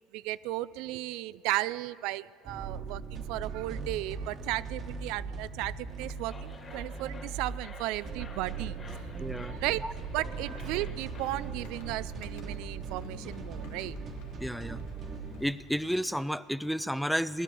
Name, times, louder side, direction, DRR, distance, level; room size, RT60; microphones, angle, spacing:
voice 1, 0.1-8.8 9.5-9.8 10.1-14.0, right 17 dB, 70° right, 17 dB, 0.3 m, -35 dB
sound 1, 2.4-15.4, right 5 dB, 40° right, 1.3 m, -39 dB
sound 2, 5.8-12.0, left 3 dB, 30° left, 2.4 m, -51 dB
voice 2, 9.2-9.9 14.4-14.8 15.4-17.4, equal, ahead, 16 dB, 0.4 m, -32 dB
sound 3, 10.3-15.9, left 6 dB, 80° left, 1.4 m, -54 dB
18.0 x 11.0 x 6.8 m, 2.3 s
supercardioid pair, 105°, 0 cm